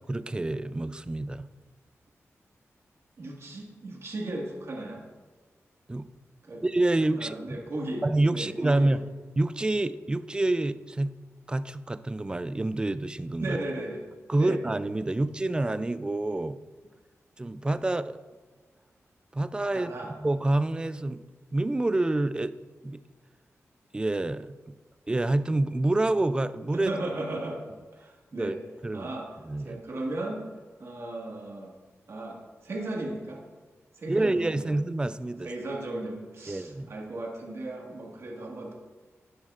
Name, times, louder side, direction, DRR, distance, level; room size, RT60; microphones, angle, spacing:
voice 1, 0.1-1.5 5.9-6.1 6.6-7.6 8.0-9.1 9.4-11.1 11.5-13.6 14.3-16.6 17.4-18.2 19.3-19.9 20.2-21.2 21.5-22.6 22.8-23.0 23.9-24.5 25.1-26.9 28.3-28.5 28.8-29.1 29.5-29.8 34.1-35.5 36.5-36.9, right 2 dB, 15° right, 14 dB, 0.3 m, -27 dB
voice 2, 3.2-5.0 6.4-6.6 7.1-8.0 8.3-8.9 13.4-14.0 14.3-14.6 19.7-20.1 26.8-27.6 27.9-28.6 28.9-29.3 29.6-30.4 30.8-31.7 32.1-32.4 32.6-33.4 34.0-34.7 35.4-38.7, right 2 dB, 60° right, -1 dB, 1.8 m, -36 dB
10.5 x 9.5 x 2.5 m, 1.4 s
wide cardioid pair, 130°, 5 cm